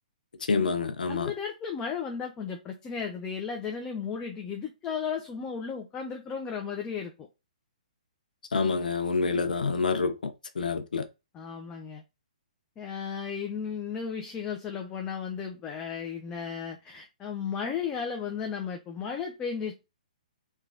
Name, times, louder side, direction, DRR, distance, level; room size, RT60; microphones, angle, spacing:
voice 1, 0.5-1.3 8.5-10.3 10.6-11.0, left 4 dB, 80° left, 0.5 m, -27 dB
voice 2, 1.1-7.3 11.3-12.0 12.8-19.8, left 6 dB, 20° left, 0.4 m, -34 dB
3.2 x 2.2 x 2.4 m
hypercardioid pair, 140°, 4 cm